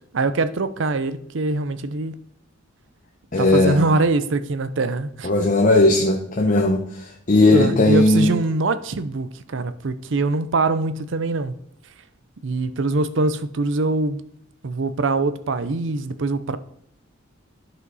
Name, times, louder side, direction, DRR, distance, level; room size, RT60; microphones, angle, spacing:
voice 1, 0.1-2.2 3.4-5.3 7.5-11.6 12.4-14.2 14.6-16.6, right 3 dB, 65° right, 0.6 m, -23 dB
voice 2, 3.3-3.9 5.2-8.3, left 2 dB, 40° left, 0.8 m, -17 dB
11.0 x 5.1 x 4.0 m
head